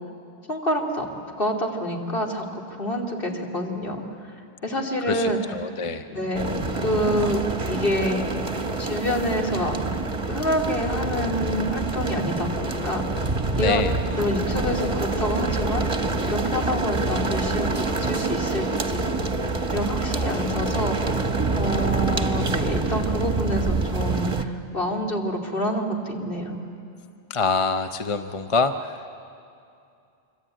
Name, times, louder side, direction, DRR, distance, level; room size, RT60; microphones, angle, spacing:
voice 1, 0.5-1.1 1.4-4.0 4.6-5.4 6.1-6.5 6.8-8.2 8.8-9.8 10.3-13.0 13.6-19.1 19.7-21.2 21.6-26.6, equal, 55° left, 1 dB, 3.0 m, -27 dB
voice 2, 5.1-6.1 13.6-14.0 27.3-29.1, left 4 dB, 35° left, 8 dB, 0.7 m, -25 dB
sound 1, 6.3-24.4, right 3 dB, 30° right, 1.1 m, -26 dB
25.0 x 25.0 x 9.0 m, 2.5 s
omnidirectional pair, 1.1 m